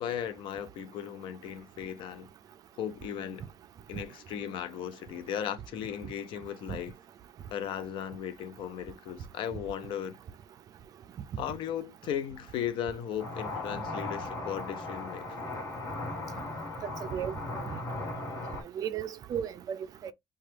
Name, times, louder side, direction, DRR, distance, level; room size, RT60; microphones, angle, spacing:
voice 1, 0.0-2.3 2.8-3.4 3.9-6.9 7.5-10.2 11.4-15.5, left 9 dB, 65° left, 0.5 m, -36 dB
sound 1, 13.2-18.6, left 2 dB, 30° left, 1.2 m, -37 dB
voice 2, 16.8-17.8 18.8-20.1, right 9 dB, 45° right, 0.3 m, -35 dB
2.9 x 2.3 x 3.2 m
cardioid pair, 155°, 9 cm